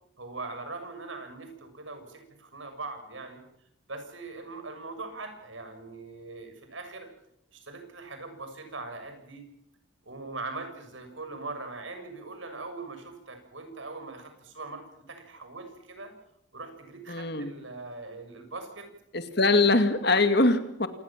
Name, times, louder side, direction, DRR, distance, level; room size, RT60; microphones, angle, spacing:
voice 1, 0.2-3.4 3.9-7.1 7.5-9.4 10.0-16.1 16.5-18.9, right 3 dB, 75° right, 6 dB, 6.9 m, -41 dB
voice 2, 17.1-17.5 19.1-20.9, left 2 dB, 55° left, 9 dB, 2.3 m, -23 dB
27.5 x 19.5 x 7.5 m, 0.76 s
head